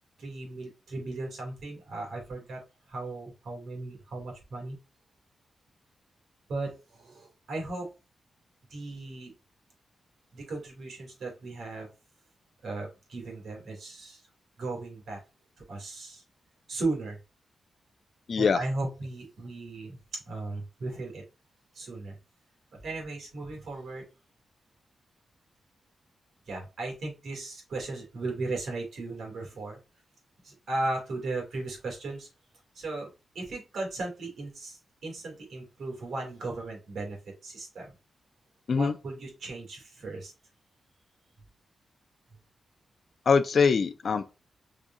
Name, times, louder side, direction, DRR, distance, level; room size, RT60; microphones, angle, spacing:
voice 1, 0.2-2.6 2.9-4.8 6.5-7.9 8.7-9.3 10.3-11.9 12.6-14.2 14.6-15.2 15.7-16.2 16.7-17.2 18.4-20.0 20.3-21.2 21.7-22.2 22.7-24.0 26.5-29.8 30.4-32.3 32.7-33.1 33.3-37.9 38.7-40.3, right 2 dB, 75° right, 2.6 m, -36 dB
voice 2, 18.3-18.6 38.7-38.9 43.3-44.3, left 5 dB, 55° left, 0.4 m, -23 dB
5.0 x 3.5 x 2.5 m
wide cardioid pair, 110°, 0 cm